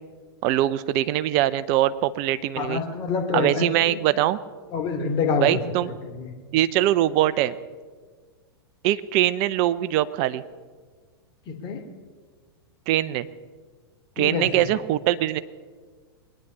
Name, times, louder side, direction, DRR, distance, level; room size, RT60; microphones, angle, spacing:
voice 1, 0.4-2.8 3.3-4.4 5.4-5.9 6.5-7.6 8.8-10.4 12.9-13.3 14.2-15.4, right 13 dB, 45° right, 15 dB, 0.7 m, -22 dB
voice 2, 2.6-4.0 4.7-6.4 11.5-11.8 14.2-14.7, left 5 dB, 35° left, 3 dB, 2.6 m, -27 dB
22.5 x 10.0 x 5.5 m, 1.5 s
hypercardioid pair, 105°, 13 cm